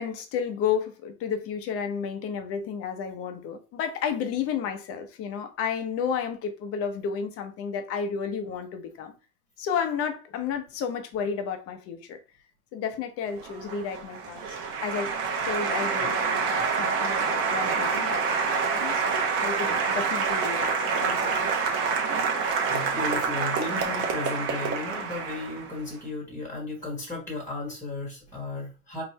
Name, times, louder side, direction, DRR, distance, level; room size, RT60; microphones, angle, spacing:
voice 1, 0.0-9.1 9.6-12.2 12.7-15.1 15.4-21.5, left 7 dB, 30° left, 0.9 m, -32 dB
Applause, 13.4-25.8, right 5 dB, 30° right, 0.9 m, -27 dB
voice 2, 22.6-29.0, left 3 dB, 5° left, 1.3 m, -35 dB
4.6 x 2.6 x 3.2 m
supercardioid pair, 130°, 43 cm